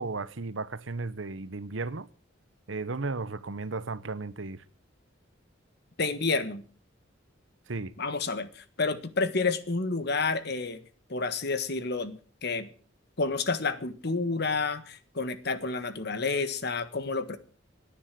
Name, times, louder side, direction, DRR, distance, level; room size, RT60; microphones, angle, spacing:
voice 1, 0.0-2.1 2.7-4.6 7.7-8.0, right 3 dB, 80° right, 1.0 m, -35 dB
voice 2, 6.0-6.6 8.0-10.8 11.1-12.7 13.2-17.4, left 4 dB, 55° left, 1.6 m, -30 dB
18.0 x 10.0 x 7.7 m
head